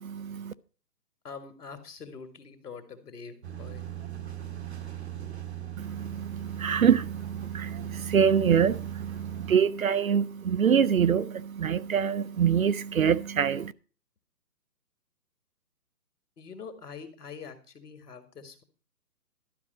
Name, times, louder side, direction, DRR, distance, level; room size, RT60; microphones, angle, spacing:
voice 1, 0.0-0.5 5.8-13.7, right 7 dB, 55° right, 0.5 m, -25 dB
voice 2, 1.2-3.9 16.4-18.6, left 5 dB, 70° left, 2.0 m, -44 dB
sound 1, 3.4-9.6, right 11 dB, 40° right, 1.0 m, -38 dB
12.0 x 5.1 x 6.6 m
hypercardioid pair, 170°, 49 cm